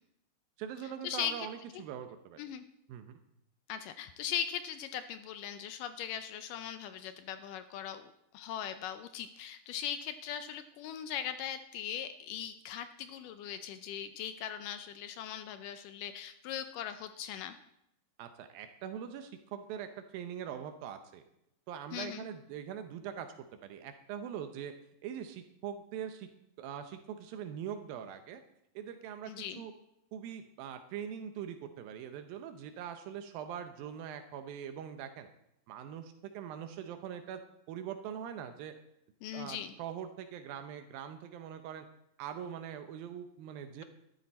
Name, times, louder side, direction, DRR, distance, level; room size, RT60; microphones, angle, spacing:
voice 1, 0.6-2.4 2.9-3.2 18.2-21.2 21.7-23.3 23.6-24.7 25.0-26.3 26.6-28.4 28.8-29.7 30.1-35.3 35.7-37.4 37.7-38.7 39.3-41.9 42.2-43.8, right 9 dB, 80° right, 8 dB, 2.5 m, -42 dB
voice 2, 3.7-17.6 21.9-22.3 29.3-29.6 39.2-39.7, left 9 dB, 80° left, 10 dB, 2.1 m, -39 dB
13.0 x 12.5 x 4.2 m, 0.80 s
omnidirectional pair, 4.2 m